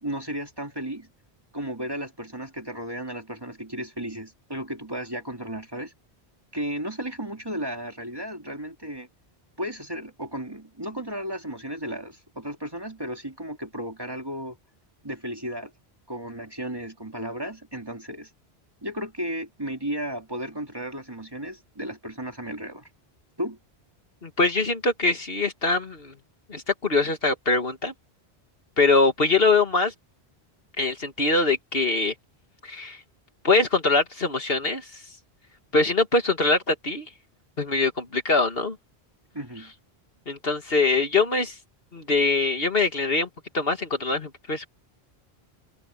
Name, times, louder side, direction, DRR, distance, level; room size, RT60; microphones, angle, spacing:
voice 1, 0.0-1.1 1.5-5.9 6.5-9.1 9.6-14.6 15.0-15.7 16.1-18.3 18.8-22.9 23.4-23.6 39.3-39.7, right 1 dB, 20° right, 2.5 m, -34 dB
voice 2, 24.2-26.1 26.5-27.9 28.8-29.9 30.8-32.1 32.6-33.0 33.4-35.0 35.7-37.1 37.6-38.8 40.3-41.5 41.9-43.3 43.5-44.7, left 3 dB, 65° left, 2.4 m, -23 dB
omnidirectional pair, 1.1 m